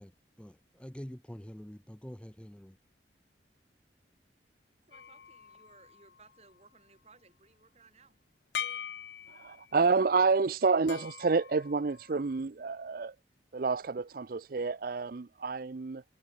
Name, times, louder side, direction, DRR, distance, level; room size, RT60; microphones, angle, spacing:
voice 1, 0.0-2.8, equal, 5° left, 0.7 m, -46 dB
sound 1, 4.9-6.6 8.5-9.8 10.9-12.4, left 8 dB, 75° left, 0.8 m, -42 dB
voice 2, 4.9-8.2, right 4 dB, 35° right, 3.9 m, -60 dB
voice 3, 9.3-13.1 13.5-16.0, right 4 dB, 55° right, 0.5 m, -29 dB
head